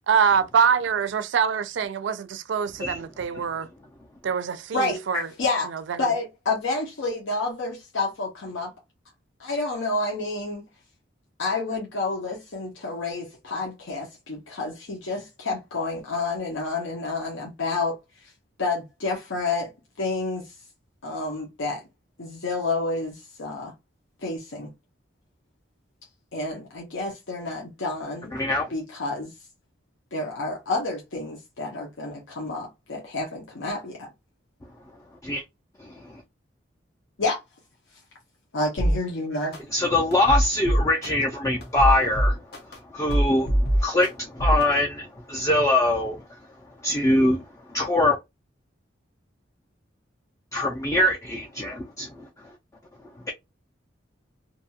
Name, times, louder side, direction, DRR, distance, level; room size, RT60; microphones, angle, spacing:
voice 1, 0.1-3.7 4.2-5.3 5.6-6.1, right 7 dB, 70° right, 0.4 m, -24 dB
voice 2, 4.7-5.7 6.0-8.7 9.4-10.7 11.4-18.0 18.6-19.7 20.0-20.5 21.0-21.8 22.2-23.7 24.2-24.7 26.3-28.4 28.7-29.3 30.1-34.1 37.2-37.4 38.5-39.6, left 3 dB, 85° left, 0.8 m, -29 dB
voice 3, 28.3-28.7 35.2-35.4 35.8-36.2 39.7-46.2 46.8-48.2 50.5-52.5 53.3-53.4, left 1 dB, 15° left, 0.4 m, -23 dB
sound 1, 38.8-39.0 39.5-39.6 40.1-41.1 41.6-42.8 43.1-44.1 44.4-44.6, equal, 55° left, 0.8 m, -21 dB
2.7 x 2.3 x 2.7 m
head